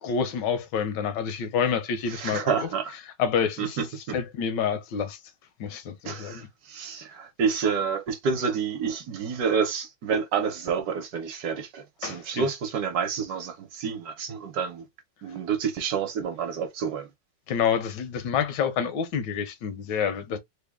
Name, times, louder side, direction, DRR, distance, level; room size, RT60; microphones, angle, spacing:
voice 1, 0.0-2.7 3.2-3.8 4.1-5.2 5.6-6.5 12.0-12.5 17.5-20.4, left 7 dB, 85° left, 1.3 m, -28 dB
voice 2, 2.1-2.9 3.6-4.2 6.0-14.9 15.2-17.1, right 6 dB, 65° right, 1.2 m, -29 dB
3.4 x 2.2 x 3.4 m
omnidirectional pair, 1.9 m